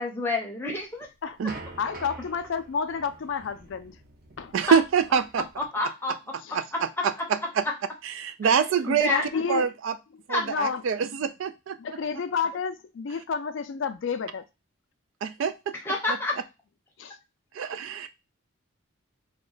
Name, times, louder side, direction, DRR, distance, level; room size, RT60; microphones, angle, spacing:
voice 1, 0.0-1.1 4.7-4.8 5.7-6.1 6.7-6.8 8.8-9.2 10.3-10.4 15.9-16.4, left 2 dB, 10° left, 0 dB, 0.7 m, -27 dB
sound 1, 0.7-5.7, right 2 dB, 40° right, 0.8 m, -46 dB
voice 2, 1.8-4.0 4.4-4.5 6.4-6.6 9.1-9.7 10.4-10.8 11.1-11.2 11.8-14.4 17.0-17.2, left 6 dB, 60° left, 10 dB, 0.4 m, -30 dB
voice 3, 4.5-5.5 6.5-7.6 8.0-9.1 9.5-9.9 10.3-11.8 15.2-15.7 16.1-16.2 17.5-18.1, right 7 dB, 65° right, 11 dB, 0.3 m, -25 dB
3.0 x 2.2 x 3.8 m, 0.26 s
head